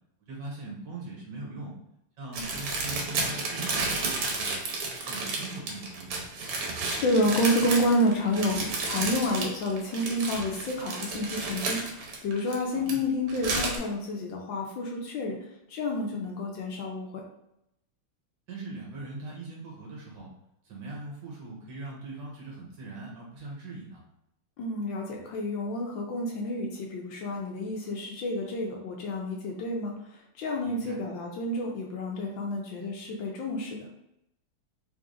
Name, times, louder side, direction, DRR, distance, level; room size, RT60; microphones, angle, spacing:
voice 1, 0.3-1.7 2.2-4.6 5.1-6.4 12.7-13.0 18.5-20.3 20.6-24.0 30.6-30.9, right 2 dB, 60° right, -3 dB, 1.5 m, -41 dB
sound 1, 2.3-12.9 13.3-13.8, right 3 dB, 85° right, 1.8 m, -32 dB
voice 2, 6.8-15.4 15.7-17.2 24.6-33.9, left 1 dB, 70° left, 0 dB, 1.2 m, -29 dB
3.7 x 3.3 x 2.5 m, 0.82 s
omnidirectional pair, 2.4 m